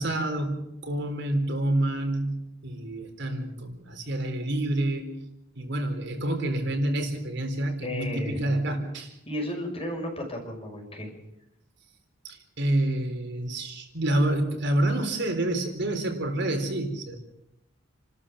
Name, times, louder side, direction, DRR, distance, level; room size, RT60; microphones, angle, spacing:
voice 1, 0.0-5.1 5.6-9.2 12.2-17.2, right 1 dB, 60° right, 4 dB, 4.0 m, -28 dB
voice 2, 7.8-8.6 9.3-11.1, left 1 dB, 30° left, 2 dB, 5.6 m, -33 dB
29.5 x 13.5 x 7.6 m, 0.87 s
head